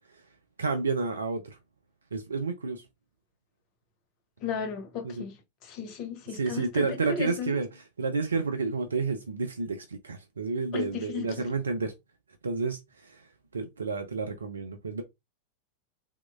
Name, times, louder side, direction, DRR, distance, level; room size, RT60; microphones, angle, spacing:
voice 1, 0.6-1.6 2.1-2.8 5.0-5.3 6.3-7.7 8.0-11.9 12.4-13.3 13.5-15.0, right 4 dB, 75° right, 0.5 m, -30 dB
voice 2, 4.4-5.4 5.6-7.5 10.7-11.4, left 6 dB, 40° left, 1.1 m, -35 dB
3.6 x 3.0 x 2.3 m
figure-of-eight pair, 90°, 0 cm